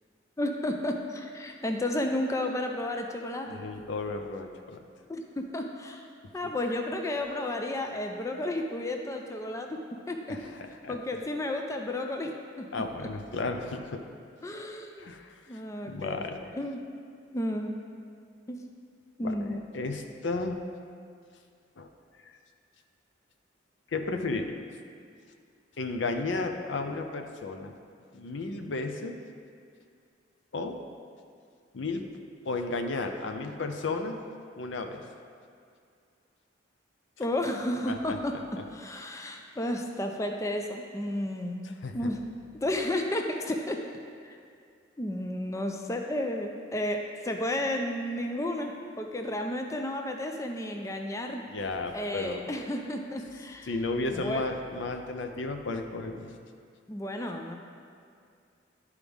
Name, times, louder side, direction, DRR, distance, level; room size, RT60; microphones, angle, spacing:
voice 1, 0.4-3.6 5.1-6.0 6.3-9.8 10.1-10.4 10.9-12.3 12.6-12.7 14.4-15.1 15.5-16.2 16.6-16.8 17.3-17.8 18.5-18.6 19.2-19.6 37.2-38.3 38.7-42.2 42.6-43.8 44.2-44.4 45.0-51.4 51.9-53.7 54.1-54.4 56.9-57.6, left 1 dB, 15° left, 3 dB, 0.4 m, -32 dB
voice 2, 3.5-4.8 10.3-11.0 12.7-14.0 15.0-15.6 15.9-16.5 19.2-20.6 21.8-21.9 23.9-24.6 25.8-27.7 28.1-29.2 30.5-30.8 31.7-32.0 32.4-34.2 34.6-35.0 37.9-38.2 41.6-42.1 51.5-52.5 53.7-56.3, left 3 dB, 75° left, 5 dB, 0.6 m, -33 dB
11.5 x 4.8 x 3.5 m, 2.3 s
head